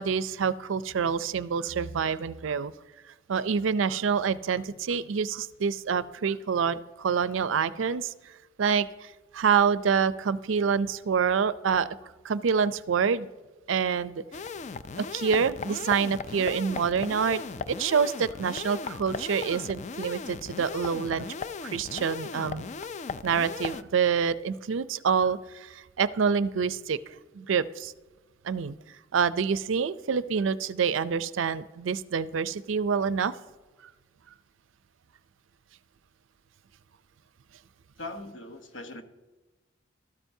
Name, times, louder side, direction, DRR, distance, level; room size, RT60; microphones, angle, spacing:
voice 1, 0.0-2.7 3.3-8.3 8.6-11.9 12.2-13.3 13.7-14.2 15.0-17.4 17.7-21.3 21.6-22.7 23.2-27.0 27.3-27.9 28.4-28.7 29.1-33.3, right 6 dB, 85° right, 16 dB, 0.5 m, -27 dB
sound 1, 14.3-23.8, left 5 dB, 40° left, 0.4 m, -37 dB
voice 2, 38.0-39.0, left 2 dB, 80° left, 6 dB, 1.1 m, -40 dB
13.5 x 13.0 x 2.7 m, 1.2 s
head